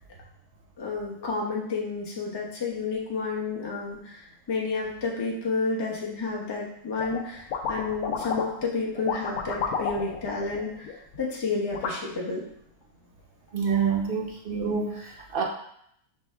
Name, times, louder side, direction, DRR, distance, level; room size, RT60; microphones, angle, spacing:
voice 1, 0.8-10.9 11.2-12.4, left 4 dB, 25° left, -3 dB, 0.6 m, -30 dB
sound 1, 7.0-7.2 7.5-8.6 8.9-11.2 11.7-11.9, left 6 dB, 75° left, 1.0 m, -31 dB
voice 2, 13.5-15.4, right 6 dB, 60° right, -1 dB, 0.6 m, -27 dB
6.3 x 2.5 x 3.3 m, 0.72 s
omnidirectional pair, 1.7 m